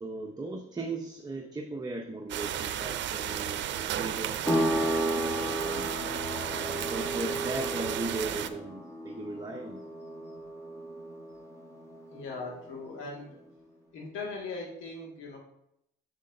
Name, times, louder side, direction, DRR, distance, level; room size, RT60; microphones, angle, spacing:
voice 1, 0.0-5.0 5.4-5.9 6.5-9.8, right 2 dB, 20° right, 1 dB, 0.7 m, -38 dB
sound 1, 2.3-8.5, right 10 dB, 65° right, 0.5 m, -34 dB
sound 2, 4.5-12.8, right 1 dB, 15° left, 1.4 m, -34 dB
voice 2, 12.1-13.4 13.9-15.4, left 3 dB, 80° left, -1 dB, 1.9 m, -39 dB
8.1 x 6.6 x 2.6 m, 0.79 s
cardioid pair, 90°, 20 cm